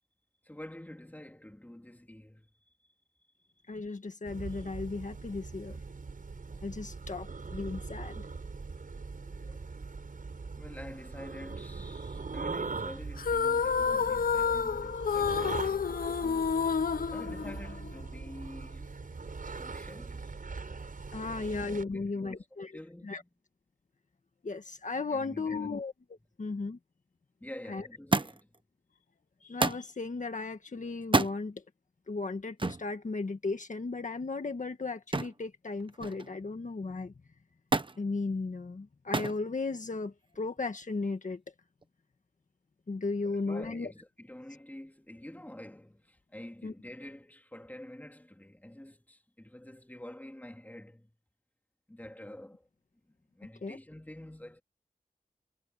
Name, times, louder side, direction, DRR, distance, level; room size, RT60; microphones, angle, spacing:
voice 1, 0.4-2.5 3.9-4.0 10.6-16.8 17.1-18.9 19.4-20.4 21.2-23.3 25.1-25.8 27.4-28.5 43.2-51.1 51.9-52.7 53.3-54.6, left 1 dB, 10° left, 3.4 m, -48 dB
voice 2, 3.7-5.8 6.6-8.3 9.4-9.6 21.1-22.7 23.0-23.2 24.4-25.9 26.4-26.8 27.7-27.9 29.4-31.6 32.1-37.1 38.0-41.4 42.9-43.9 46.6-46.7 53.6-53.8, left 3 dB, 60° left, 1.7 m, -35 dB
sound 1, 4.3-21.8, right 4 dB, 70° right, 6.2 m, -41 dB
sound 2, 13.2-18.0, left 6 dB, 90° left, 0.7 m, -29 dB
Thump thud, 28.1-28.6 29.6-29.9 31.0-31.4 32.6-32.9 35.1-35.4 35.8-36.4 37.7-38.0 39.1-39.4 40.3-40.8 41.8-41.9, right 3 dB, 35° right, 1.1 m, -29 dB
wide cardioid pair, 80°, 15 cm